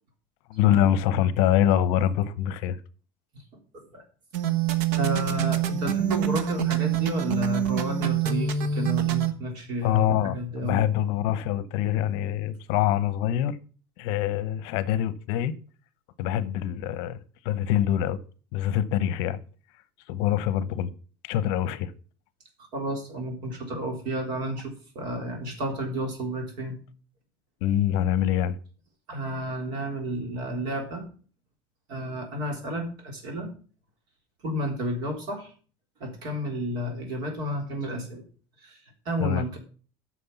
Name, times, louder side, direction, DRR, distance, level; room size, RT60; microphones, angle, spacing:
voice 1, 0.5-2.8 9.8-13.6 14.0-15.5 16.2-17.2 17.4-18.2 18.5-19.4 20.1-20.9 21.2-21.9 27.6-28.6 39.2-39.4, left 11 dB, 65° left, 0.8 m, -24 dB
sound 1, 4.3-9.3, right 9 dB, 80° right, 1.2 m, -25 dB
voice 2, 5.0-10.8 22.7-26.8 29.1-31.0 31.9-33.5 34.4-35.5 36.0-38.2 38.6-38.8 39.1-39.6, right 1 dB, 50° right, 3.6 m, -31 dB
9.6 x 6.2 x 7.0 m
cardioid pair, 165°, 9 cm